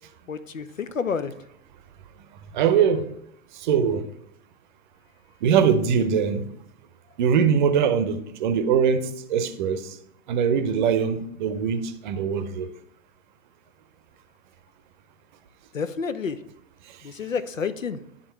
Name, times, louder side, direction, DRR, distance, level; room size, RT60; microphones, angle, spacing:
voice 1, 0.3-1.3 15.7-16.4 17.0-18.0, left 5 dB, 80° left, 0.6 m, -29 dB
voice 2, 2.5-3.1 3.6-4.1 5.4-6.4 7.2-9.9 10.3-12.7, right 7 dB, 40° right, 0.7 m, -22 dB
10.5 x 3.7 x 4.4 m
figure-of-eight pair, 105°, 38 cm